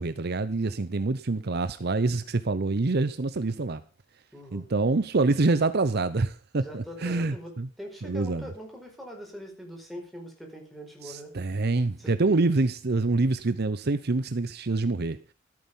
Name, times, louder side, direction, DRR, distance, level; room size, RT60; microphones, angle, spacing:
voice 1, 0.0-3.8 4.5-7.7 8.0-8.4 11.0-15.3, right 3 dB, 55° right, 0.7 m, -26 dB
voice 2, 4.3-4.7 6.5-7.5 7.8-11.3 12.0-12.1, equal, ahead, 4.7 m, -42 dB
14.0 x 8.8 x 5.5 m
head